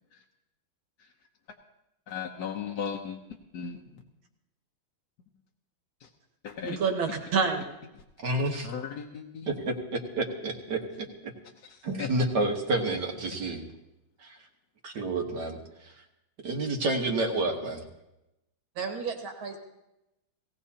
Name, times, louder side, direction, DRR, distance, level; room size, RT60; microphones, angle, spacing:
voice 1, 2.1-3.2 3.5-4.0 6.0-6.1 6.4-6.8 8.6-9.5 11.7-12.1, left 7 dB, 60° left, 1 dB, 1.3 m, -36 dB
voice 2, 6.6-7.6 18.8-19.6, right 5 dB, 85° right, 2 dB, 2.6 m, -29 dB
voice 3, 8.2-8.7 9.5-9.7 10.2-11.3 11.8-13.6 14.2-14.4 14.8-15.9 16.4-17.8, right 2 dB, 60° right, 2 dB, 1.9 m, -29 dB
18.0 x 17.5 x 2.9 m, 0.92 s
omnidirectional pair, 2.2 m